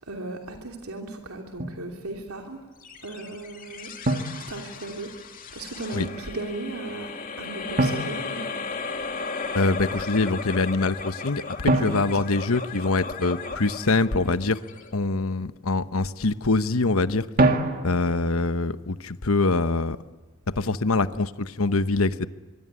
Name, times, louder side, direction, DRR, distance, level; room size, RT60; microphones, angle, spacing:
voice 1, 0.0-2.6 3.0-3.9 4.5-8.6 11.8-12.2, right 2 dB, 85° right, 2 dB, 3.1 m, -37 dB
Drum, 1.6-1.9 4.0-5.2 7.8-9.2 11.7-13.4 17.4-18.3, right 2 dB, 40° right, 2.1 m, -26 dB
sound 1, 2.8-15.4, left 4 dB, 40° left, 2.6 m, -36 dB
voice 2, 9.5-14.6 14.9-17.3 17.8-20.0 20.6-22.3, left 3 dB, 75° left, 12 dB, 1.1 m, -24 dB
24.5 x 24.0 x 9.8 m, 1.3 s
head